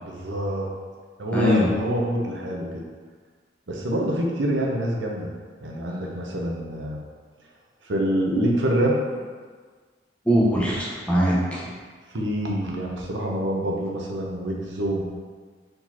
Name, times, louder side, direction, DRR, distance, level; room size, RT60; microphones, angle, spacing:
voice 1, 0.0-0.7 1.2-2.8 3.7-5.3 5.6-7.0 7.8-9.0 12.1-15.0, right 1 dB, 85° right, -1 dB, 0.8 m, -26 dB
voice 2, 1.3-1.7 10.2-11.6, equal, 5° left, -7 dB, 0.9 m, -21 dB
4.7 x 3.9 x 2.8 m, 1.5 s
head